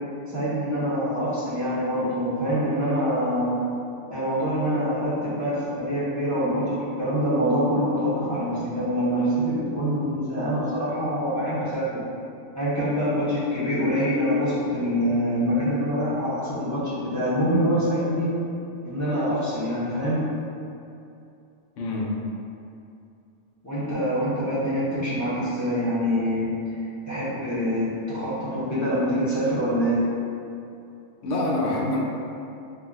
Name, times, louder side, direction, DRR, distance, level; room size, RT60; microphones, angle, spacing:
voice 1, 0.3-3.5 4.1-12.0 12.5-18.3 18.8-20.2 23.6-26.5 26.8-30.0, equal, 20° left, -11 dB, 0.6 m, -25 dB
voice 2, 21.8-22.2 31.2-32.0, left 2 dB, 85° left, -4 dB, 1.0 m, -25 dB
3.7 x 2.1 x 2.5 m, 2.6 s
omnidirectional pair, 1.3 m